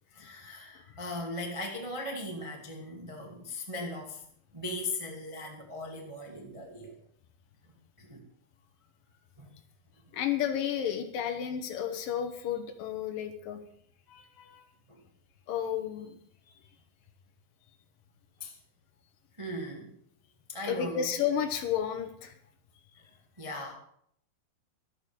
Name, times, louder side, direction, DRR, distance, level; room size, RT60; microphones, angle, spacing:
voice 1, 0.1-4.3 4.5-6.9 8.0-8.2 9.4-9.5 14.9-15.0 18.4-18.5 19.4-19.9 20.5-21.1 23.0-23.1 23.4-23.7, left 1 dB, 15° right, 0 dB, 1.0 m, -38 dB
voice 2, 10.1-13.6 14.1-14.6 15.5-16.2 20.7-22.3, left 9 dB, 70° left, 7 dB, 2.6 m, -32 dB
13.0 x 12.0 x 5.3 m, 0.67 s
omnidirectional pair, 4.5 m